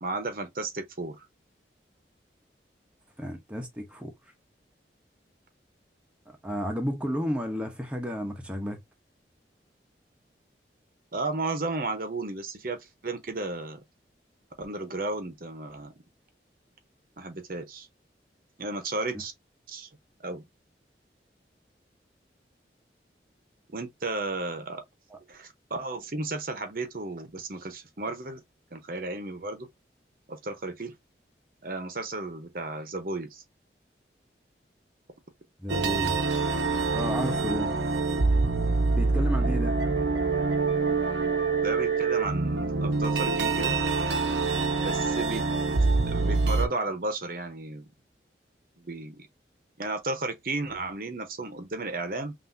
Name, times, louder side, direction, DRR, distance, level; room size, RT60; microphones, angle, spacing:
voice 1, 0.0-1.2 11.1-13.8 14.6-15.9 17.2-17.9 18.6-19.3 19.7-19.9 20.2-20.4 23.7-24.8 25.3-28.4 28.7-29.7 30.3-30.9 31.6-33.4 41.6-43.8 44.8-45.5 45.8-47.9 48.8-49.3 49.8-52.3, right 2 dB, 50° right, 0.8 m, -34 dB
voice 2, 3.2-4.1 6.3-8.8 25.1-25.2 35.6-36.2 36.9-37.7 38.9-39.8, equal, 5° right, 0.8 m, -32 dB
sound 1, 35.7-46.7, right 3 dB, 85° right, 0.9 m, -25 dB
5.7 x 2.6 x 2.6 m
head